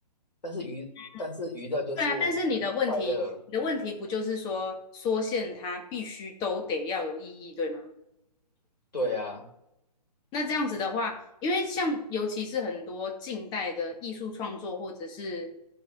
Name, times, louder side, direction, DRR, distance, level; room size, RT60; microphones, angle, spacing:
voice 1, 0.4-0.9 1.2-2.3 2.9-3.4 8.9-9.5, left 1 dB, 80° left, 2 dB, 3.4 m, -32 dB
voice 2, 2.0-3.2 3.5-7.9 10.3-15.5, left 3 dB, 20° left, 2 dB, 2.2 m, -31 dB
14.0 x 5.4 x 6.3 m, 0.84 s
figure-of-eight pair, 140°, 21 cm